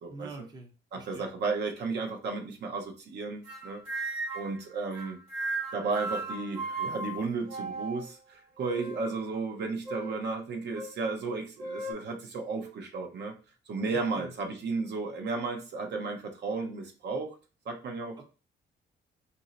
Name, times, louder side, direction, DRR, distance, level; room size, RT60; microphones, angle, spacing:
voice 1, 0.1-1.3 13.9-14.3 18.2-18.3, right 3 dB, 20° right, 3 dB, 0.6 m, -46 dB
voice 2, 0.9-5.2 5.7-13.3 13.7-17.3 17.7-18.2, right 4 dB, 60° right, 3 dB, 0.7 m, -34 dB
sound 1, 3.4-4.6 4.9-8.1 8.6-9.2 9.8-10.2 10.7-10.9 11.6-11.9, right 2 dB, 80° right, 1.3 m, -36 dB
2.6 x 2.1 x 3.9 m, 0.35 s
cardioid pair, 90°, 20 cm